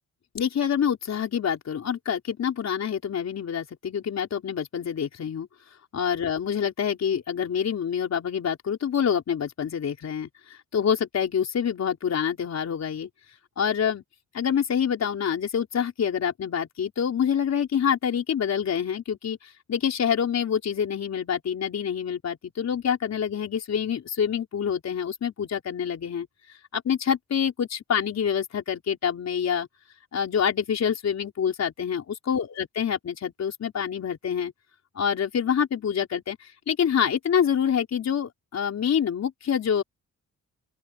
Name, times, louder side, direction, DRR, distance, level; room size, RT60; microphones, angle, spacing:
voice 1, 0.3-5.5 5.9-13.1 13.6-14.0 14.3-26.3 26.7-29.7 30.1-34.5 34.9-39.8, left 8 dB, 50° left, 4.3 m, -26 dB
open air
wide cardioid pair, 165°, 34 cm